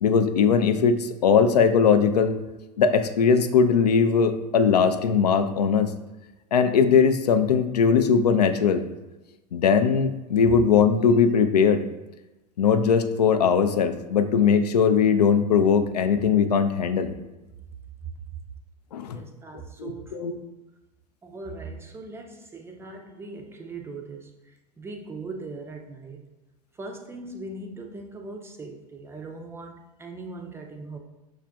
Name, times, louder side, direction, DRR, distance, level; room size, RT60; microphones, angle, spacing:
voice 1, 0.0-2.4 2.8-5.9 6.5-8.8 9.5-11.8 12.6-17.1 18.9-19.2 19.8-20.3, left 6 dB, 70° left, 7 dB, 0.4 m, -20 dB
voice 2, 19.1-20.5 21.2-26.2 26.7-31.0, right 3 dB, 10° right, 3 dB, 0.4 m, -40 dB
6.1 x 2.4 x 2.2 m, 1.0 s
figure-of-eight pair, 90°, 21 cm